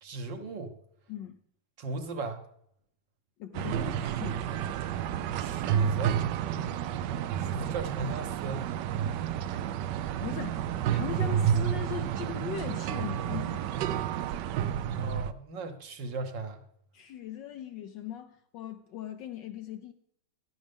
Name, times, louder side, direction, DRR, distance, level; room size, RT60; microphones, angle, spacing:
voice 1, 0.0-0.7 1.8-2.4 5.4-6.2 7.4-8.7 14.7-16.6, right 3 dB, 60° right, 1.6 m, -37 dB
voice 2, 3.4-4.7 6.5-6.8 9.4-9.9 10.2-13.7 16.9-19.9, left 10 dB, 70° left, 1.1 m, -40 dB
sound 1, 3.5-15.3, right 9 dB, 80° right, 1.0 m, -30 dB
12.0 x 10.5 x 3.6 m
omnidirectional pair, 2.4 m